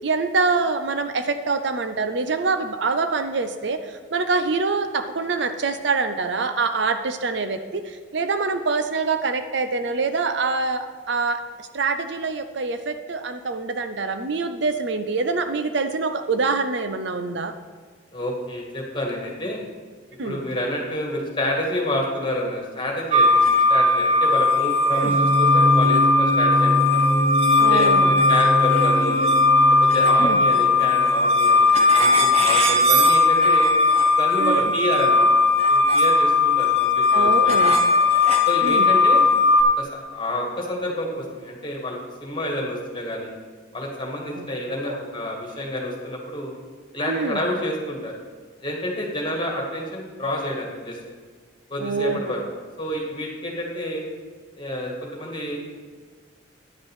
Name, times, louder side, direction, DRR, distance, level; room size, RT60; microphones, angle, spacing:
voice 1, 0.0-3.8 4.1-7.8 8.1-11.4 11.7-17.5 20.2-20.4 25.0-25.2 27.6-28.1 30.2-30.4 34.4-34.7 37.1-37.8 38.6-38.9 44.4-44.5 44.9-45.0 47.1-47.4 51.8-52.3, right 4 dB, 65° right, 9 dB, 0.6 m, -25 dB
voice 2, 18.1-19.6 20.2-26.9 27.6-29.3 29.7-33.7 34.2-35.3 35.7-37.9 38.5-39.3 39.8-43.3 43.7-46.5 46.9-48.1 48.6-51.0 51.7-52.4 52.8-54.0 54.6-55.6, left 1 dB, 25° left, -1 dB, 1.9 m, -29 dB
sound 1, 23.1-39.6, left 3 dB, 30° right, 1.0 m, -18 dB
sound 2, 24.9-31.4, equal, 10° left, 1.1 m, -25 dB
10.5 x 5.3 x 7.3 m, 1.5 s
head